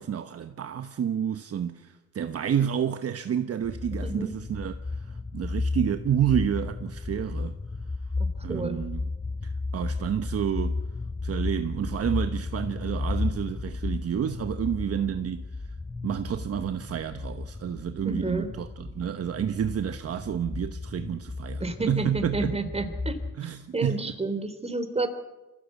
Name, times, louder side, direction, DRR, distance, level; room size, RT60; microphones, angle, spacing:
voice 1, 0.0-7.6 8.4-9.1 9.4-10.8 11.2-15.7 16.0-22.6 23.4-24.1, right 9 dB, 50° right, 1.2 m, -30 dB
sound 1, 3.6-23.4, left 3 dB, 10° left, 0.7 m, -34 dB
voice 2, 8.2-8.8 18.1-18.5 21.6-23.2 23.7-25.1, right 3 dB, 20° right, 3.5 m, -30 dB
25.5 x 16.0 x 8.3 m
cardioid pair, 90°, 30 cm